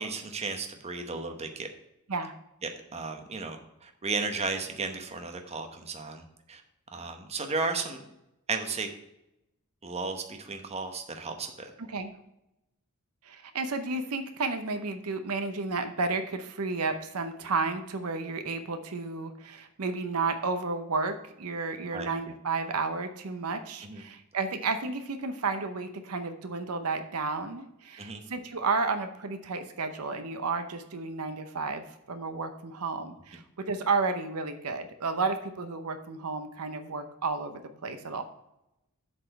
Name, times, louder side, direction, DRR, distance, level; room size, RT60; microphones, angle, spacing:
voice 1, 0.0-1.7 2.6-6.2 6.5-6.6 6.9-8.0 8.5-8.9 9.8-11.7 21.9-22.1 23.8-24.0 28.0-28.2, right 4 dB, 30° right, 5 dB, 0.9 m, -34 dB
voice 2, 11.8-12.1 13.2-38.2, right 4 dB, 80° right, 8 dB, 0.8 m, -32 dB
7.8 x 4.3 x 6.7 m, 0.86 s
head